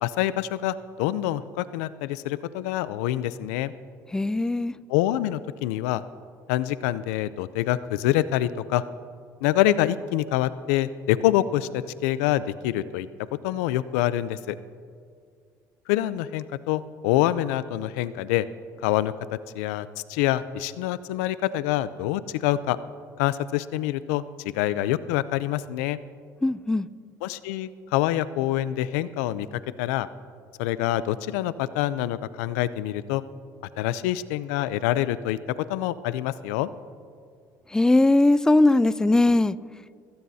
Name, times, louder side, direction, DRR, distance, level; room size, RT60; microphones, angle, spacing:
voice 1, 0.0-3.7 4.9-6.0 6.5-8.8 9.4-13.1 13.4-14.6 15.9-18.5 18.8-19.1 19.5-22.8 23.2-26.0 27.2-29.5 29.8-30.1 30.6-33.2 33.8-35.4 35.7-36.7, left 14 dB, 85° left, 16 dB, 0.5 m, -26 dB
voice 2, 4.1-4.7 26.4-26.9 37.7-39.6, left 2 dB, 10° left, 18 dB, 0.4 m, -20 dB
21.5 x 17.0 x 2.8 m, 2.2 s
supercardioid pair, 90°, 8 cm